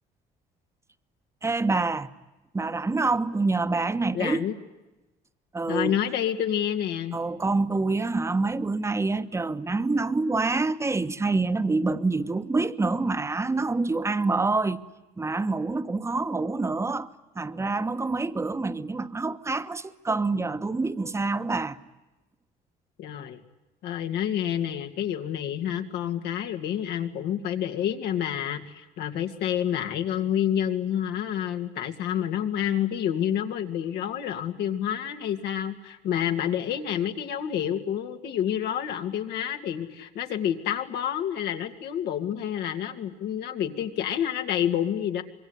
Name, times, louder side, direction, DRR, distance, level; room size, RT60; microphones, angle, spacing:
voice 1, 1.4-2.1 2.5-4.4 5.5-6.0 7.1-14.8 15.2-21.8, right 3 dB, 15° right, 1.2 m, -26 dB
voice 2, 4.1-4.5 5.7-7.2 23.0-23.4 23.8-45.2, left 10 dB, 75° left, 2.4 m, -28 dB
25.5 x 23.0 x 9.8 m
cardioid pair, 110°, 17 cm